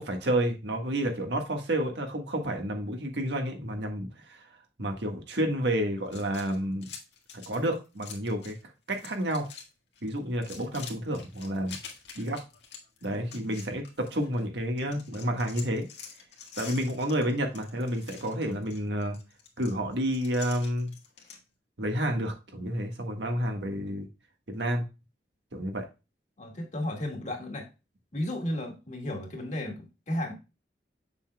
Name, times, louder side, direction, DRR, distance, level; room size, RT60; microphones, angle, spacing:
voice 1, 0.0-4.4 4.8-6.9 7.5-8.5 8.9-9.5 10.0-11.8 12.1-12.4 13.0-15.8 16.6-19.2 19.6-20.9 21.8-24.1 24.5-24.8 25.5-25.8, right 1 dB, 80° right, 1.6 m, -30 dB
sound 1, 6.1-8.6 8.9-9.7 10.0-14.4 14.8-21.4, left 7 dB, 80° left, 1.7 m, -47 dB
voice 2, 26.4-27.7 28.1-30.3, left 1 dB, 45° left, 1.8 m, -34 dB
7.0 x 6.9 x 2.2 m
head